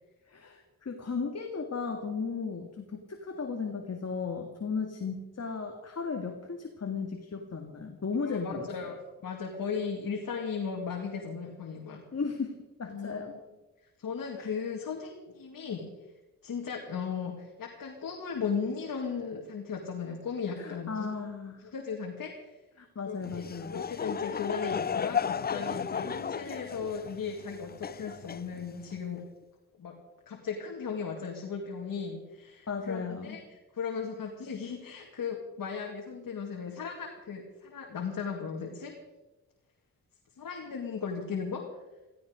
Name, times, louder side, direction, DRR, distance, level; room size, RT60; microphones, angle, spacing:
voice 1, 0.3-9.0 12.1-13.3 14.4-14.5 20.6-21.7 22.8-23.8 32.7-33.4, left 5 dB, 50° left, 4 dB, 2.0 m, -35 dB
voice 2, 8.3-9.0 9.2-12.0 12.9-13.1 14.0-15.9 16.4-21.1 21.6-22.5 23.1-23.5 23.7-29.2 29.8-29.9 30.3-38.9 40.4-41.6, left 6 dB, 70° left, 1 dB, 2.3 m, -36 dB
Laughter / Crowd, 23.2-29.0, left 7 dB, 30° left, 0.4 m, -34 dB
16.5 x 15.5 x 5.1 m, 1.1 s
cardioid pair, 60°, 34 cm